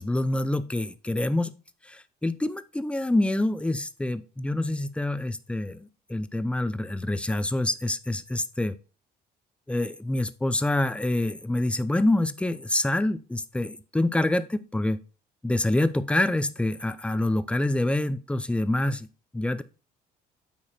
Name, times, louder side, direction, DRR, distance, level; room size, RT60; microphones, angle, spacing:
voice 1, 0.0-1.5 1.9-8.7 9.7-15.0 15.4-19.1 19.3-19.6, left 1 dB, 5° left, 13 dB, 0.6 m, -26 dB
8.7 x 4.7 x 4.4 m, 0.34 s
cardioid pair, 110°, 17 cm